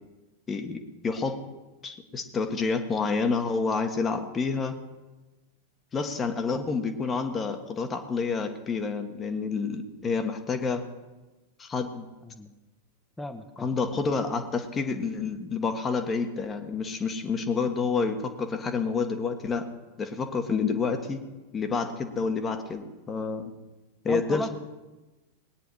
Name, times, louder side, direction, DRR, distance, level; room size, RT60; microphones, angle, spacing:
voice 1, 0.5-1.4 1.8-4.8 5.9-10.8 11.6-12.1 13.6-19.7 20.0-21.2 21.5-23.5 24.0-24.5, left 4 dB, 20° left, 8 dB, 1.5 m, -29 dB
voice 2, 13.2-13.7 24.1-24.5, left 1 dB, 5° left, 8 dB, 1.2 m, -35 dB
20.0 x 9.6 x 4.8 m, 1.1 s
figure-of-eight pair, 90°, 0 cm